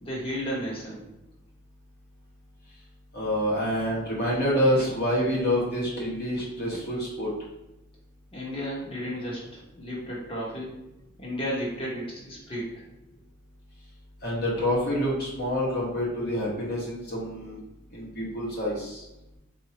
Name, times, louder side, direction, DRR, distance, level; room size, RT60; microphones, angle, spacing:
voice 1, 0.0-1.1 8.3-10.7 11.2-12.7, equal, 25° left, -5 dB, 1.1 m, -33 dB
voice 2, 3.1-7.3 14.2-17.6 17.9-19.0, equal, 50° left, -6 dB, 1.3 m, -27 dB
4.1 x 2.7 x 2.9 m, 0.93 s
head